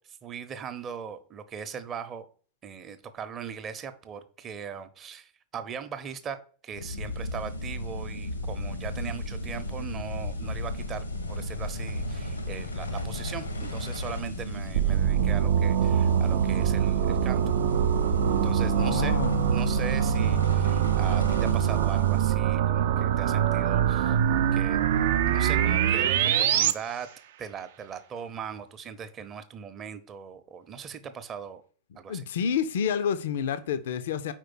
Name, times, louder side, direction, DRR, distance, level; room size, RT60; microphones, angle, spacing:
voice 1, 0.1-2.3 2.6-17.4 18.3-19.2 19.5-24.2 24.5-24.8 25.3-27.1 27.4-31.6 32.0-32.3, right 7 dB, 30° right, 10 dB, 0.7 m, -39 dB
sound 1, 6.7-22.3, left 1 dB, 80° left, 0.9 m, -34 dB
sound 2, 14.7-26.7, right 10 dB, 55° right, 0.5 m, -24 dB
voice 2, 18.8-19.4 32.1-34.3, left 7 dB, 60° left, 12 dB, 0.5 m, -29 dB
4.9 x 4.4 x 6.0 m, 0.43 s
figure-of-eight pair, 90°, 0 cm